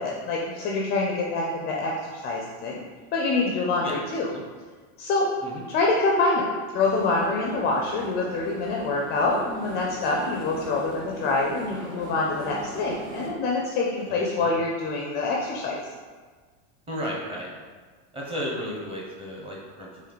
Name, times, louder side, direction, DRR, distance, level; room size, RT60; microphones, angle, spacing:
voice 1, 0.0-2.8 3.1-4.3 5.0-5.3 5.7-6.4 6.7-15.8, left 3 dB, 30° left, -1 dB, 0.4 m, -26 dB
sound 1, 6.8-13.3, right 2 dB, 60° right, 1.1 m, -40 dB
voice 2, 14.0-14.5 16.9-17.5 18.1-20.1, equal, 15° right, -3 dB, 0.8 m, -34 dB
4.4 x 3.0 x 3.9 m, 1.5 s
supercardioid pair, 150°, 37 cm